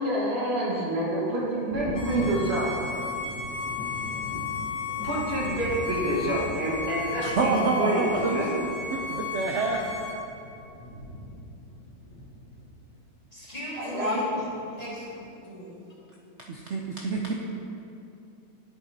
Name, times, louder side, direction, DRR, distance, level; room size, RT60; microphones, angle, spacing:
voice 1, 0.0-2.7 5.0-8.6 13.8-14.5, right 1 dB, 35° right, -5 dB, 1.7 m, -27 dB
Thunder, 1.7-13.1 14.4-14.5 15.0-15.1, equal, 75° left, 1.8 m, -40 dB
Bowed string instrument, 1.9-10.2, left 4 dB, 45° left, 1.2 m, -34 dB
voice 2, 7.2-8.5 8.9-9.8 16.5-17.3, right 3 dB, 85° right, 0 dB, 0.6 m, -27 dB
voice 3, 13.3-14.3 14.8-15.8, left 1 dB, 20° left, -8 dB, 1.9 m, -38 dB
10.0 x 8.0 x 2.8 m, 2.6 s
omnidirectional pair, 1.9 m